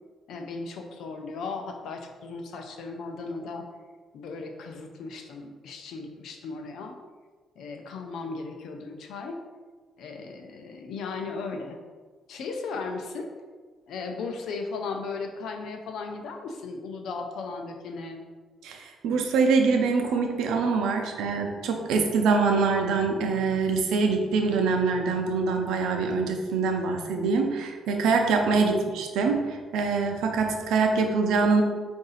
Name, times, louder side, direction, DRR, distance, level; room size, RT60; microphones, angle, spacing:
voice 1, 0.3-3.7 4.1-7.0 7.6-9.4 10.0-11.8 12.3-13.3 13.9-18.2 28.6-28.8, left 4 dB, 75° left, 4 dB, 0.6 m, -36 dB
voice 2, 18.6-31.6, right 4 dB, 85° right, 3 dB, 0.6 m, -24 dB
4.8 x 2.6 x 4.0 m, 1.4 s
cardioid pair, 90°, 0 cm